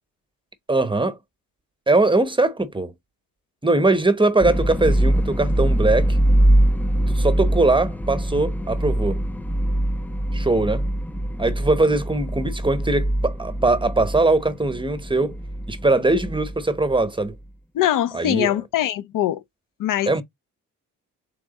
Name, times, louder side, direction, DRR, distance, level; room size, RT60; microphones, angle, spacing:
voice 1, 0.7-1.2 1.9-2.9 3.6-6.2 7.1-9.2 10.3-10.8 11.4-15.4 15.7-17.4 18.1-18.5 20.1-20.2, right 2 dB, 15° right, 0.9 m, -21 dB
sound 1, 4.4-17.3, right 1 dB, 5° left, 0.5 m, -23 dB
voice 2, 17.7-19.4 19.8-20.2, left 12 dB, 65° left, 0.6 m, -22 dB
3.6 x 3.3 x 4.0 m
supercardioid pair, 60°, 36 cm